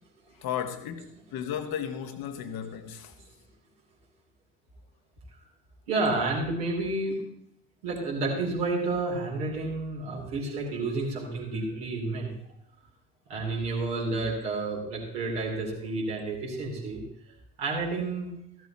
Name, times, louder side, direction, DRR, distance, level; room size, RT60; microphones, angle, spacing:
voice 1, 0.4-3.2, left 8 dB, 50° left, 1.2 m, -34 dB
voice 2, 5.9-7.2 7.8-12.3 13.3-17.0 17.6-18.3, right 3 dB, 70° right, 3.3 m, -30 dB
14.5 x 12.0 x 2.9 m
figure-of-eight pair, 45°, 46 cm